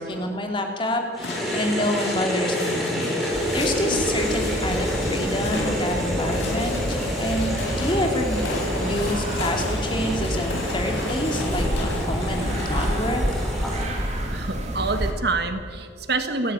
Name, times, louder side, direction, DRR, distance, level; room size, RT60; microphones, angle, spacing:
voice 1, 0.0-8.4 8.8-13.2, left 1 dB, 25° left, 2 dB, 2.9 m, -28 dB
sound 1, 1.1-13.8, equal, ahead, 5.4 m, -29 dB
sound 2, 1.2-13.1, left 1 dB, 80° left, 5.6 m, -32 dB
sound 3, 3.3-15.1, equal, 35° right, 2.9 m, -29 dB
voice 2, 14.3-16.5, right 3 dB, 60° right, 8 dB, 1.6 m, -27 dB
28.5 x 11.5 x 9.3 m, 2.1 s
head